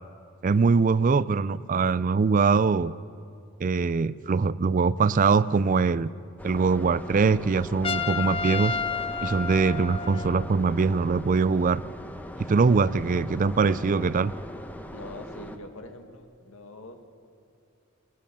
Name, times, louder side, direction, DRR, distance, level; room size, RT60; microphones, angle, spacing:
voice 1, 0.4-2.9 3.6-6.1 6.4-8.8 9.2-11.8 12.5-14.3, right 4 dB, 40° right, 18 dB, 0.4 m, -22 dB
sound 1, 6.4-15.6, equal, 5° left, 1.0 m, -40 dB
Trumpet, 7.8-10.5, left 5 dB, 25° left, 0.6 m, -30 dB
voice 2, 14.9-17.1, left 1 dB, 70° left, 5 dB, 2.0 m, -43 dB
21.0 x 18.0 x 7.0 m, 2.6 s
head